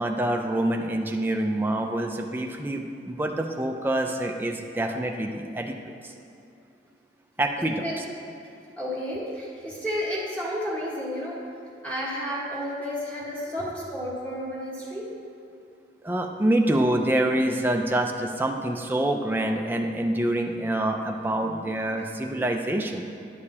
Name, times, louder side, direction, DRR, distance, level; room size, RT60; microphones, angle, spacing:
voice 1, 0.0-6.1 7.4-8.0 13.6-13.7 16.0-23.1, right 1 dB, 10° right, 2 dB, 0.4 m, -26 dB
voice 2, 7.8-8.1 8.8-11.4 11.8-15.1, equal, 10° left, -6 dB, 1.4 m, -31 dB
11.0 x 6.6 x 2.9 m, 2.7 s
head